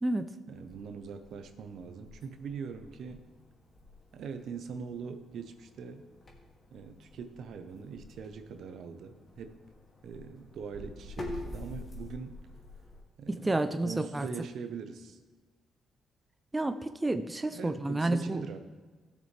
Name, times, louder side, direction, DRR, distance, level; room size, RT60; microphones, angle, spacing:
sound 1, 0.5-13.0, left 1 dB, 40° left, 2.3 m, -47 dB
voice 1, 0.5-3.3 4.1-6.1 6.7-9.6 10.0-12.4 13.2-15.2 17.5-18.6, right 6 dB, 70° right, 8 dB, 1.0 m, -42 dB
voice 2, 13.3-14.3 16.5-18.4, right 2 dB, 15° right, 9 dB, 0.5 m, -30 dB
17.0 x 6.8 x 3.3 m, 1.4 s
cardioid pair, 90°, 0 cm